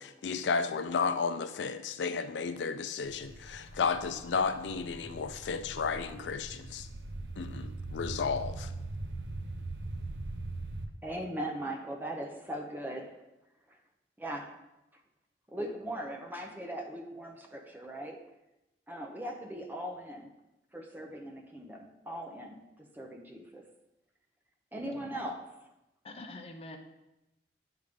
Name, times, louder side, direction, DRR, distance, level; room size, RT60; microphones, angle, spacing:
voice 1, 0.0-6.9 7.4-8.7, left 5 dB, 80° left, 10 dB, 0.4 m, -33 dB
sound 1, 3.0-10.9, right 2 dB, 90° right, 0.6 m, -41 dB
voice 2, 11.0-13.2 13.7-13.8 14.2-14.6 15.5-18.3 18.9-20.3 20.7-23.7 24.7-25.6, right 1 dB, 10° right, 3 dB, 0.6 m, -39 dB
voice 3, 24.9-25.2 26.0-26.8, left 2 dB, 35° left, 3 dB, 0.7 m, -46 dB
7.9 x 3.5 x 5.1 m, 0.94 s
head